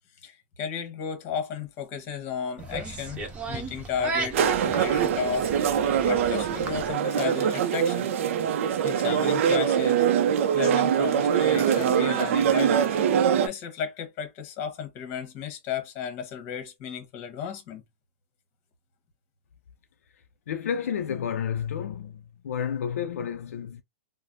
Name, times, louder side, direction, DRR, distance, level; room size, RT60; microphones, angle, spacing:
voice 1, 0.2-8.1 8.8-10.1 10.5-13.0 13.4-17.8, left 7 dB, 35° left, 1.1 m, -34 dB
sound 1, 2.6-6.9, right 4 dB, 15° right, 0.6 m, -35 dB
sound 2, 4.3-13.5, right 8 dB, 60° right, 0.4 m, -23 dB
voice 2, 20.5-23.8, left 8 dB, 80° left, 0.4 m, -31 dB
3.2 x 2.0 x 2.5 m
hypercardioid pair, 145°, 8 cm